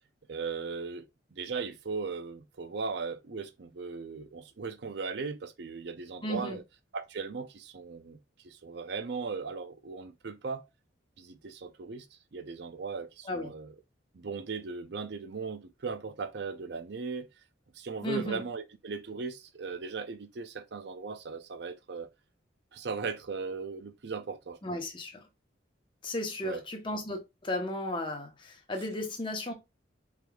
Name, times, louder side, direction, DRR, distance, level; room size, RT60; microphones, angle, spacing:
voice 1, 0.3-1.1 1.3-6.6 6.9-8.2 8.4-10.7 11.2-12.1 12.3-13.7 14.1-17.3 17.8-22.1 22.7-24.8 26.4-26.6, right 4 dB, 60° right, 0.5 m, -38 dB
voice 2, 6.2-6.6 13.2-13.5 18.0-18.4 24.6-25.2 26.0-29.5, left 1 dB, 25° left, 0.9 m, -35 dB
4.6 x 3.5 x 2.3 m
head